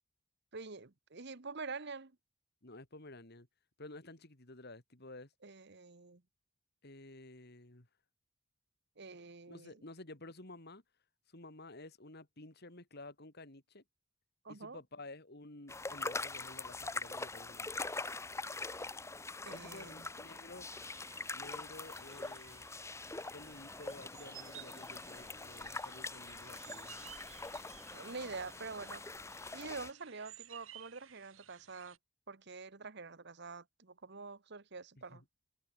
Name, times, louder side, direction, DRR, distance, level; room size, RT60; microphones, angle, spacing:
voice 1, 0.5-2.2 5.4-6.2 9.0-9.8 14.4-14.8 19.4-20.1 27.9-29.2 29.5-32.0 32.3-35.2, right 4 dB, 55° right, 1.3 m, -46 dB
voice 2, 2.6-3.5 3.8-5.3 6.8-7.9 9.5-10.8 11.3-13.8 14.5-17.8 19.5-20.8 21.3-22.6 23.3-26.9 35.1-35.2, left 2 dB, 50° left, 3.1 m, -52 dB
sound 1, 15.7-29.9, left 3 dB, 15° left, 1.0 m, -43 dB
sound 2, 20.6-32.0, right 13 dB, 75° right, 2.5 m, -57 dB
head